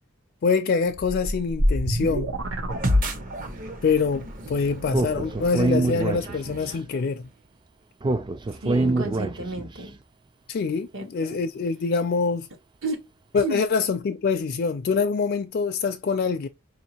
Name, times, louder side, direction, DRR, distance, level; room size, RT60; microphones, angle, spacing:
voice 1, 0.4-2.3 3.8-7.2 10.5-12.5 13.3-16.5, left 5 dB, 50° left, 0.4 m, -25 dB
sound 1, 0.9-3.6, equal, 85° right, 0.9 m, -27 dB
sound 2, 2.7-7.3, left 1 dB, 40° right, 0.8 m, -30 dB
Speech, 4.9-6.7 8.0-9.8, right 2 dB, 25° right, 0.3 m, -25 dB
voice 2, 8.5-10.0 10.9-11.4 12.8-13.1 13.3-13.6, right 2 dB, 70° right, 1.2 m, -32 dB
4.9 x 2.7 x 2.8 m
head